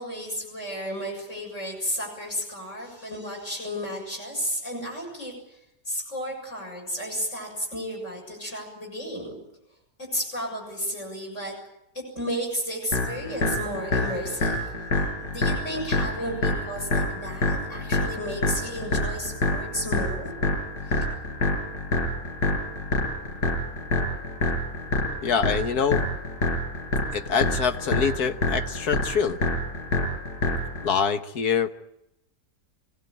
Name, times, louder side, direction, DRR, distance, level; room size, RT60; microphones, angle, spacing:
voice 1, 0.0-5.6 5.9-9.3 10.1-11.5 11.9-20.3 20.8-21.1, equal, 45° left, -1 dB, 7.6 m, -33 dB
sound 1, 12.9-30.9, left 2 dB, 85° left, 6.6 m, -27 dB
voice 2, 25.2-26.0 27.1-29.4 30.8-31.7, left 6 dB, 70° left, 8 dB, 1.7 m, -25 dB
26.0 x 18.0 x 9.1 m, 0.86 s
omnidirectional pair, 1.7 m